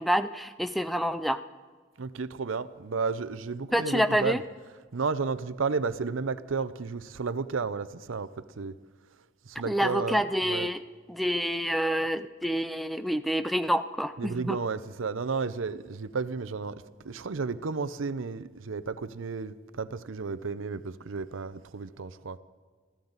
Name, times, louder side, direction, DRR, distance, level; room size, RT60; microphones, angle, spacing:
voice 1, 0.0-1.4 3.7-4.4 9.7-10.8 11.1-14.6, equal, ahead, 0.4 m, -27 dB
voice 2, 2.0-8.8 9.4-10.8 14.2-22.4, right 4 dB, 80° right, 0.6 m, -33 dB
22.0 x 15.0 x 4.0 m
head